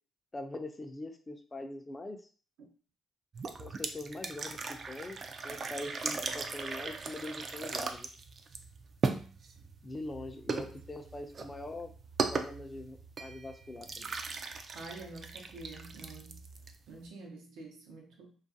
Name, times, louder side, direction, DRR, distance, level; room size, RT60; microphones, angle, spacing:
voice 1, 0.3-2.2 3.6-8.1 9.8-11.9 12.3-14.1, left 2 dB, 25° left, 6 dB, 0.4 m, -42 dB
sound 1, 3.3-17.1, right 4 dB, 45° right, 0.3 m, -38 dB
voice 2, 14.7-16.4 16.9-18.3, right 2 dB, 90° right, 1 dB, 0.7 m, -48 dB
2.4 x 2.3 x 2.6 m, 0.40 s
cardioid pair, 90°, 0 cm